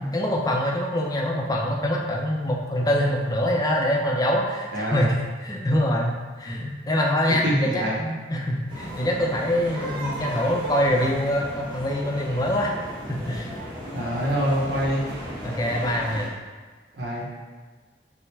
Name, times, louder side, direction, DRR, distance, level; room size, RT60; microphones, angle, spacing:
voice 1, 0.1-12.7 13.1-13.6 15.4-16.3, left 1 dB, 20° left, -1 dB, 0.5 m, -24 dB
voice 2, 4.7-5.1 7.4-8.0 13.9-15.0 16.9-17.2, equal, 65° right, -4 dB, 0.8 m, -25 dB
sound 1, 8.7-16.3, equal, 25° right, 1.1 m, -35 dB
5.6 x 2.1 x 3.3 m, 1.4 s
head